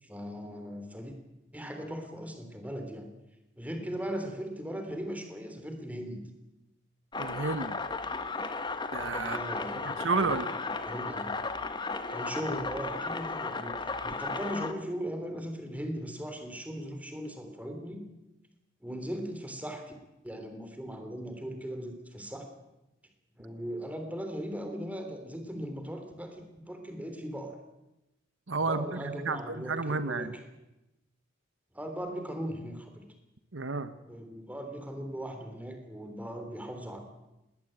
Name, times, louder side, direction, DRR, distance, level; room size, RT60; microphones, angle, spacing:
voice 1, 0.0-1.1 1.5-3.1 3.5-6.2 9.2-10.4 10.8-11.3 12.1-18.0 18.8-19.9 20.2-22.5 23.4-27.6 28.7-30.3 31.7-33.0 34.0-37.0, equal, 10° right, 6 dB, 3.4 m, -38 dB
sound 1, 7.1-14.7, left 3 dB, 25° left, 1.3 m, -35 dB
voice 2, 7.2-7.8 8.9-9.4 9.8-10.5 28.5-30.3 33.5-33.9, right 3 dB, 80° right, 12 dB, 1.2 m, -31 dB
19.5 x 19.5 x 8.9 m, 0.95 s
head